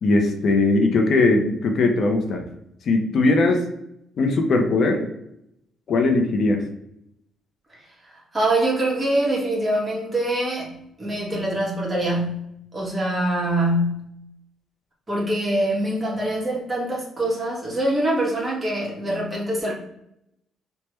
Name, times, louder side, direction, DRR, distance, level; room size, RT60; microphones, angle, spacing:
voice 1, 0.0-2.4 2.8-3.6 4.2-5.1 5.9-6.6, left 2 dB, 60° left, 3 dB, 0.5 m, -19 dB
voice 2, 8.3-10.7 11.0-12.4 12.7-14.1 15.1-19.7, right 1 dB, 25° right, -4 dB, 1.2 m, -24 dB
3.3 x 2.1 x 2.9 m, 0.78 s
cardioid pair, 90°, 0 cm